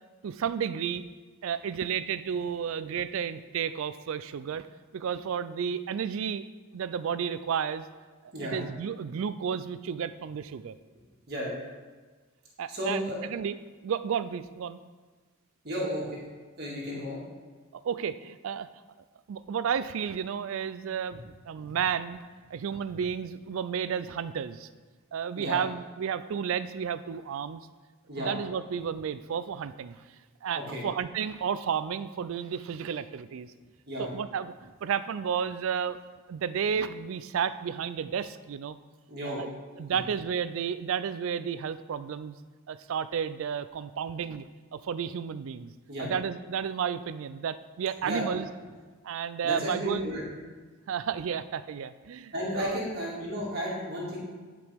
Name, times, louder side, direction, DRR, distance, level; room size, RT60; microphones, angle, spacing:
voice 1, 0.2-1.0 1.4-4.7 4.9-6.4 6.7-7.9 8.5-10.7 12.6-13.6 13.8-14.8 17.7-18.7 19.3-22.2 22.5-24.7 25.1-27.6 28.2-30.0 30.4-33.5 34.0-36.0 36.3-38.8 39.2-39.5 39.8-42.4 42.7-44.5 44.7-45.7 46.0-48.5 49.0-50.0 50.9-52.8, right 7 dB, 65° right, 14 dB, 0.3 m, -32 dB
voice 2, 12.7-13.2 15.6-16.2 16.6-17.2 21.6-21.7 25.3-25.6 28.1-28.3 30.6-30.8 33.9-34.1 39.1-39.4 39.9-40.0 45.9-46.1 48.0-48.3 49.4-50.2 52.3-54.2, equal, 50° right, -5 dB, 2.2 m, -33 dB
11.0 x 5.1 x 3.5 m, 1.4 s
head